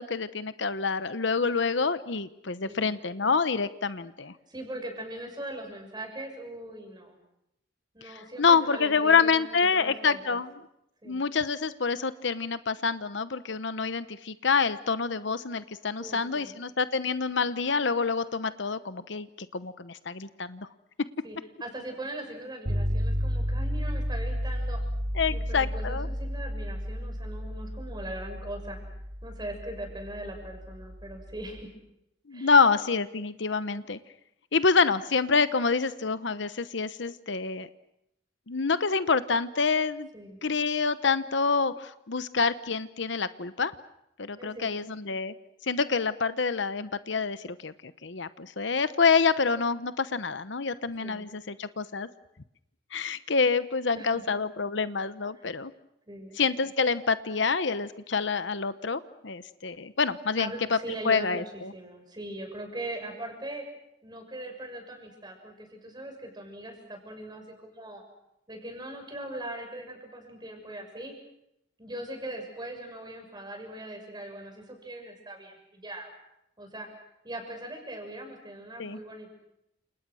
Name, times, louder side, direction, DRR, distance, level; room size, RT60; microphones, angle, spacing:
voice 1, 0.0-4.3 8.0-10.5 11.1-19.3 19.5-20.7 25.1-26.1 32.3-34.0 34.5-37.7 38.5-40.1 40.4-43.7 44.2-45.3 45.6-52.1 52.9-55.7 56.4-61.7 78.8-79.0, left 5 dB, 65° left, 13 dB, 0.9 m, -27 dB
voice 2, 2.7-3.0 4.5-7.2 7.9-10.4 11.0-11.2 16.0-16.5 17.3-17.4 21.2-24.8 25.3-28.8 29.2-31.7 32.3-32.5 40.1-40.4 44.4-44.7 51.0-51.3 53.9-54.3 56.1-56.4 60.4-63.6 64.0-68.0 68.5-71.1 71.8-76.1 76.6-77.0 77.2-79.3, right 1 dB, 20° right, 3 dB, 6.7 m, -40 dB
sound 1, 22.6-31.6, equal, 60° right, 3.9 m, -32 dB
30.0 x 28.0 x 6.3 m, 0.82 s
head